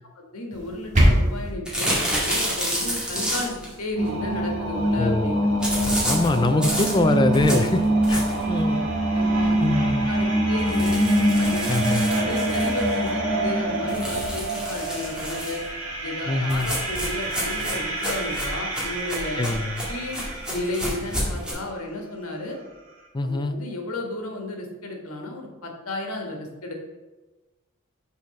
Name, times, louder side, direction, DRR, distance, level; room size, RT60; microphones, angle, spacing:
voice 1, 0.1-5.5 7.4-7.6 8.3-8.4 9.1-9.7 10.1-11.0 11.4-15.6 16.0-19.5 19.9-22.6 23.2-26.7, left 2 dB, 75° left, 1 dB, 1.5 m, -33 dB
sound 1, 0.5-1.5, equal, 35° right, 1.7 m, -20 dB
sound 2, 1.6-3.7 5.6-8.5 9.0-9.1 9.4-9.5 9.8-9.9 10.6-13.1 13.9-15.7 16.5-21.5, equal, 5° right, 2.2 m, -29 dB
sound 3, 4.0-20.6, right 1 dB, 65° right, 2.3 m, -25 dB
voice 2, 5.0-5.3 6.1-7.8 8.1-8.8 9.6-10.1 11.7-12.1 16.3-16.7 19.4-19.8 23.1-23.6, left 2 dB, 20° left, 9 dB, 0.4 m, -23 dB
7.0 x 4.6 x 5.7 m, 1.2 s
head